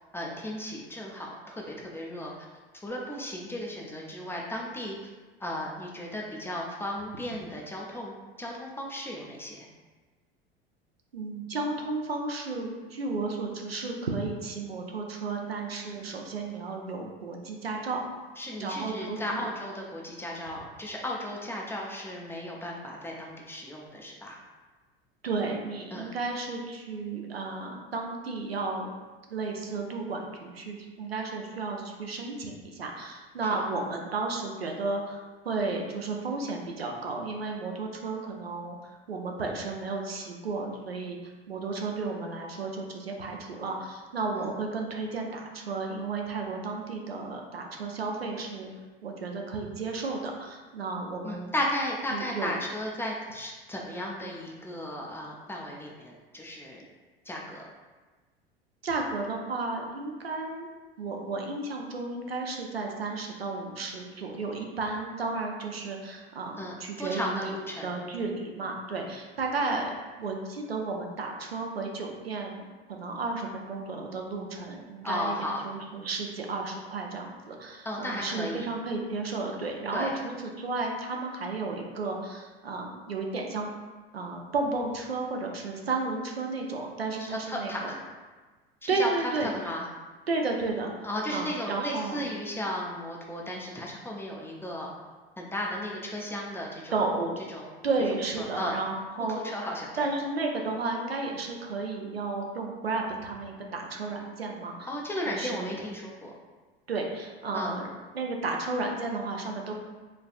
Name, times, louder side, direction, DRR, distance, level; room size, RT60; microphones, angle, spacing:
voice 1, 0.1-2.3 2.8-5.0 5.4-9.7 18.4-24.4 25.9-26.1 33.4-33.7 44.4-44.5 51.2-56.9 57.2-57.6 66.5-67.9 75.0-75.6 77.8-78.7 79.9-80.1 87.2-88.0 88.8-89.9 91.0-94.9 95.4-97.0 97.5-97.7 98.4-98.7 99.3-100.1 104.9-106.3 107.5-107.7, left 1 dB, 10° left, -2 dB, 0.4 m, -35 dB
voice 2, 11.1-18.0 18.6-19.5 25.2-28.9 29.3-41.2 41.5-48.7 49.0-51.5 52.1-52.5 58.8-60.7 61.0-67.5 67.8-69.9 70.2-83.7 84.1-87.9 88.9-89.5 90.3-92.2 96.9-97.4 97.8-99.4 100.0-104.9 105.3-105.7 106.9-107.9 108.1-109.7, right 3 dB, 85° right, 1 dB, 0.5 m, -33 dB
4.4 x 2.3 x 2.4 m, 1.3 s
figure-of-eight pair, 75°, 30 cm